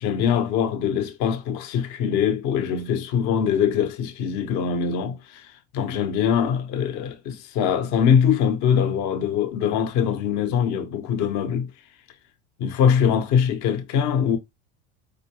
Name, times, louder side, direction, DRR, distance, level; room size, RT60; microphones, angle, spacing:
voice 1, 0.0-11.7 12.6-14.4, left 8 dB, 55° left, 0.9 m, -23 dB
4.5 x 2.5 x 2.9 m
hypercardioid pair, 85°, 34 cm